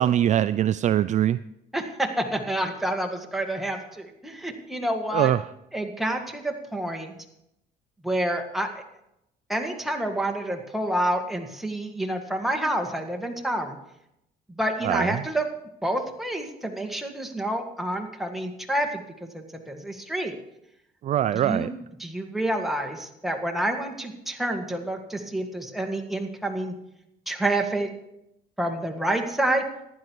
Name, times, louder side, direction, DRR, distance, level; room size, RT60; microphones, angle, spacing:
voice 1, 0.0-1.4 5.1-5.4 14.8-15.2 21.0-21.7, right 11 dB, 45° right, 14 dB, 0.4 m, -22 dB
voice 2, 1.7-5.3 5.7-7.1 8.0-8.8 9.5-13.8 14.5-15.5 15.8-20.3 21.3-26.7 27.3-27.9 28.6-29.6, right 1 dB, ahead, 2 dB, 1.8 m, -28 dB
15.0 x 11.0 x 4.7 m, 0.83 s
cardioid pair, 110°, 17 cm